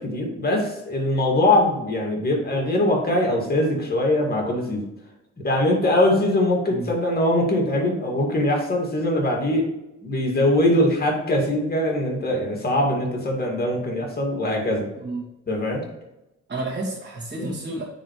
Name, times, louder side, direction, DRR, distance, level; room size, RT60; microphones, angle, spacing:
voice 1, 0.0-4.8 5.4-9.7 10.0-14.9 15.5-15.8 17.4-17.5, left 1 dB, 30° left, 0 dB, 2.3 m, -22 dB
voice 2, 16.5-17.8, right 2 dB, 35° right, -8 dB, 2.4 m, -30 dB
9.5 x 4.0 x 3.3 m, 0.89 s
cardioid pair, 90°, 30 cm